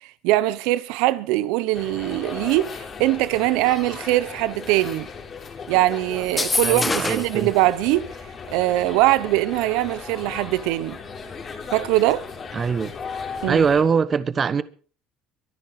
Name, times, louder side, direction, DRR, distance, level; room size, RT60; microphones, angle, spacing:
voice 1, 0.2-5.1 5.7-8.1 8.5-11.0 11.7-12.3 13.4-13.6, right 16 dB, 85° right, 0.9 m, -22 dB
sound 1, 1.7-13.8, left 5 dB, 35° left, 3.8 m, -37 dB
sound 2, 6.2-7.4, left 3 dB, 20° left, 1.7 m, -24 dB
voice 2, 6.6-7.5 12.5-12.9 13.5-14.6, right 6 dB, 35° right, 1.2 m, -22 dB
23.5 x 10.5 x 4.9 m
cardioid pair, 105°, 0 cm